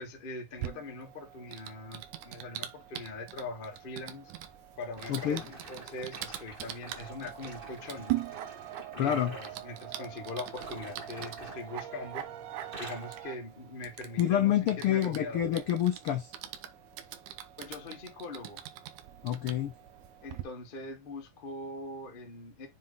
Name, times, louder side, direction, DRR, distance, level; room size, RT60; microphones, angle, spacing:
voice 1, 0.0-4.3 4.8-8.2 8.9-12.3 12.8-15.4 17.6-18.6 20.2-22.7, left 2 dB, 60° left, 0.5 m, -42 dB
Typing, 0.6-20.4, right 13 dB, 90° right, 2.2 m, -43 dB
sound 1, 4.9-9.6 10.4-12.2 12.5-13.2 13.8-14.0 14.6-14.7, right 2 dB, 55° right, 0.6 m, -48 dB
voice 2, 5.1-5.4 9.0-9.4 14.2-16.3 19.2-19.7, left 11 dB, 80° left, 1.2 m, -27 dB
sound 2, 7.0-13.4, right 9 dB, 70° right, 1.9 m, -46 dB
7.4 x 3.6 x 3.8 m
omnidirectional pair, 3.4 m